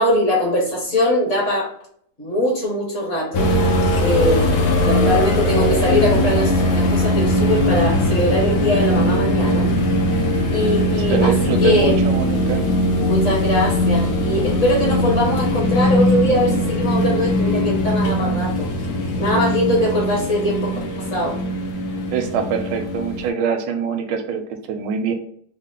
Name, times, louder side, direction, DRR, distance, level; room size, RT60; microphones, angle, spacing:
voice 1, 0.0-1.7 2.2-3.5 4.0-4.5 4.8-9.7 10.5-12.0 12.9-18.7 19.2-21.4, equal, 45° left, -3 dB, 1.5 m, -21 dB
sound 1, 3.3-23.3, left 1 dB, 75° left, 1.2 m, -20 dB
voice 2, 10.9-12.7 14.1-14.2 22.1-25.1, right 6 dB, 85° right, 6 dB, 1.3 m, -24 dB
3.6 x 2.0 x 3.7 m, 0.63 s
omnidirectional pair, 1.9 m